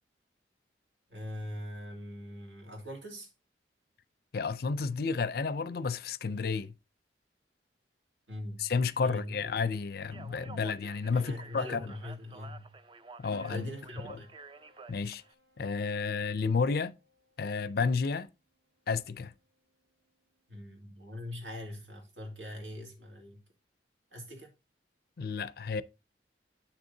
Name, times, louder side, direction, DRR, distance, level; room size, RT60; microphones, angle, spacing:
voice 1, 1.1-3.3 8.3-8.7 9.0-9.3 11.1-12.7 13.5-14.3 20.5-23.4 24.1-24.5, left 1 dB, 85° right, 2.3 m, -42 dB
voice 2, 4.3-6.7 8.6-11.9 13.2-13.7 14.1-14.2 14.9-15.2 15.6-17.0 17.4-18.3 18.9-19.3 25.2-25.8, left 5 dB, 55° left, 0.4 m, -31 dB
Speech, 10.0-15.3, right 3 dB, 25° right, 0.4 m, -51 dB
Piano, 13.3-17.8 19.0-19.7, left 1 dB, 55° right, 1.0 m, -57 dB
8.5 x 6.4 x 2.7 m
head